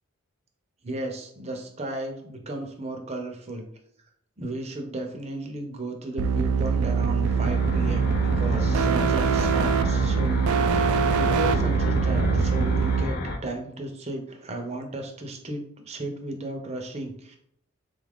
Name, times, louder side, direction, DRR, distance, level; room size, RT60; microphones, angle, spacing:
voice 1, 0.8-3.7 4.4-17.4, right 2 dB, 30° right, 3 dB, 0.6 m, -35 dB
sound 1, 6.2-13.0, right 5 dB, 85° right, 0.3 m, -23 dB
sound 2, 7.2-13.4, left 2 dB, 45° left, 0.4 m, -30 dB
3.7 x 2.4 x 3.5 m, 0.69 s
head